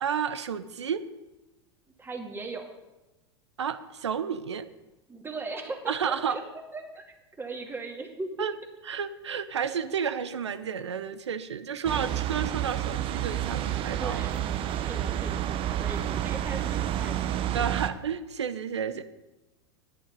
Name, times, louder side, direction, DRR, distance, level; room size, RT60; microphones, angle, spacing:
voice 1, 0.0-1.0 3.6-4.7 5.9-6.4 8.4-8.5 8.8-14.2 17.5-19.0, right 7 dB, 85° right, 12 dB, 0.8 m, -31 dB
voice 2, 2.0-2.7 5.1-6.4 6.7-7.1 7.4-8.5 11.9-12.6 13.9-17.2, right 3 dB, 15° right, 1 dB, 2.3 m, -39 dB
sound 1, 11.8-17.9, right 11 dB, 40° right, 0.8 m, -30 dB
11.0 x 10.0 x 5.3 m, 1.0 s
hypercardioid pair, 90°, 14 cm